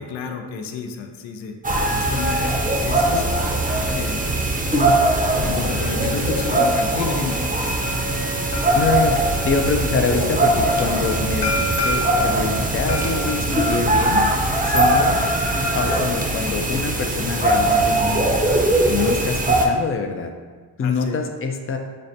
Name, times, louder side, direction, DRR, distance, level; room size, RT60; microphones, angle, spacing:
voice 1, 0.0-1.5 1.9-3.3 3.9-4.2 5.4-7.4 20.8-21.2, left 5 dB, 90° left, 5 dB, 0.5 m, -31 dB
sound 1, 1.6-19.7, right 1 dB, 20° right, 0.6 m, -21 dB
sound 2, 2.0-13.4, right 1 dB, 65° left, 1.1 m, -31 dB
voice 2, 8.7-9.2 9.4-14.3 14.6-15.2 15.7-18.4 18.9-20.3 20.8-21.8, left 5 dB, 30° left, 5 dB, 0.4 m, -25 dB
6.3 x 2.1 x 2.7 m, 1.5 s
cardioid pair, 80°, 44 cm